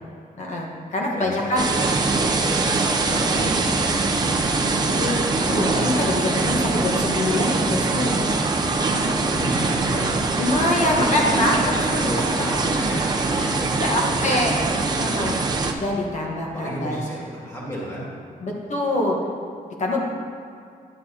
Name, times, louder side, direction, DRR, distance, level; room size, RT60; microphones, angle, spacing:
voice 1, 0.4-1.6 5.0-5.2 5.4-8.4 10.4-12.0 13.3-14.5 15.0-17.0 18.4-19.2 19.8-20.0, left 1 dB, 50° left, -2 dB, 1.2 m, -24 dB
sound 1, 1.6-15.7, right 3 dB, 25° right, 0.5 m, -23 dB
voice 2, 3.0-4.0 9.3-10.1 10.7-11.5 11.8-14.9 16.4-18.1, right 1 dB, 20° left, -6 dB, 2.1 m, -33 dB
11.0 x 8.6 x 2.8 m, 2.4 s
wide cardioid pair, 175°, 15 cm